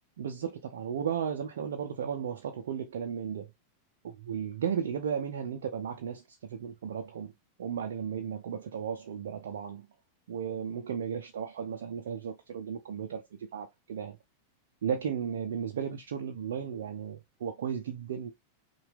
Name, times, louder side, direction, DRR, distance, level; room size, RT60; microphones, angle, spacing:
voice 1, 0.2-3.5 4.0-7.3 7.6-9.9 10.3-14.2 14.8-18.3, right 8 dB, 60° right, 0.6 m, -35 dB
5.6 x 2.5 x 3.3 m
figure-of-eight pair, 90°, 0 cm